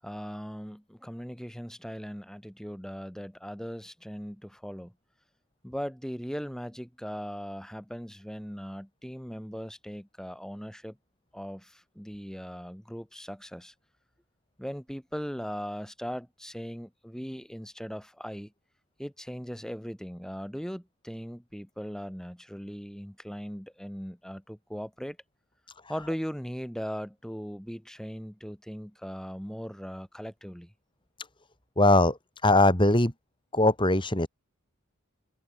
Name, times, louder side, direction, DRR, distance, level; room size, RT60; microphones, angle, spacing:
voice 1, 0.0-4.9 5.6-11.0 11.3-13.7 14.6-18.5 19.0-25.2 25.9-30.7, equal, 5° left, 7.6 m, -39 dB
voice 2, 31.8-33.1 33.5-34.3, left 2 dB, 20° left, 3.3 m, -21 dB
head